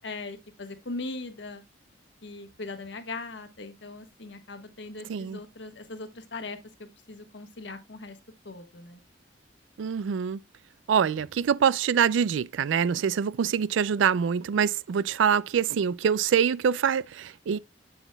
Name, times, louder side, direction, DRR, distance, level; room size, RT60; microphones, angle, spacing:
voice 1, 0.0-1.6 2.2-8.2 8.4-9.0, left 3 dB, 70° left, 1.3 m, -40 dB
voice 2, 9.8-10.4 10.9-17.6, right 7 dB, 85° right, 0.4 m, -25 dB
8.1 x 7.8 x 2.2 m
head